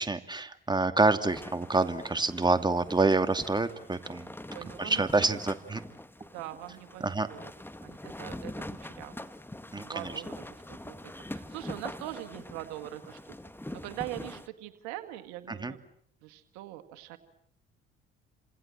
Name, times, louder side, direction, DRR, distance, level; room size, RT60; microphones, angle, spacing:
voice 1, 0.0-4.3 4.8-5.8 7.0-7.3 9.7-10.1 15.5-15.7, right 3 dB, 15° right, 8 dB, 2.6 m, -27 dB
sound 1, 1.3-14.5, left 1 dB, 5° left, 1.9 m, -44 dB
voice 2, 4.5-5.4 6.3-7.5 7.8-8.5 8.8-9.3 9.8-11.0 11.3-13.4 13.7-15.8 16.2-17.2, right 15 dB, 70° right, 9 dB, 1.9 m, -42 dB
29.5 x 26.5 x 7.6 m, 0.69 s
hypercardioid pair, 50°, 29 cm